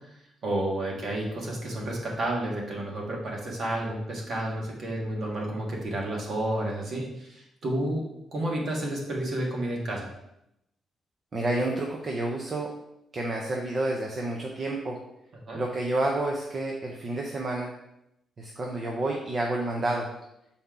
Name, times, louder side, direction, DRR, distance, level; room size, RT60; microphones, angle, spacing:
voice 1, 0.4-8.0 8.3-10.1 15.5-15.6, right 1 dB, 45° right, -1 dB, 1.5 m, -31 dB
voice 2, 11.3-12.7 13.1-15.0 15.5-17.7 18.4-20.1, right 2 dB, 30° right, 0 dB, 0.6 m, -29 dB
7.0 x 4.2 x 3.8 m, 0.84 s
cardioid pair, 170°, 0 cm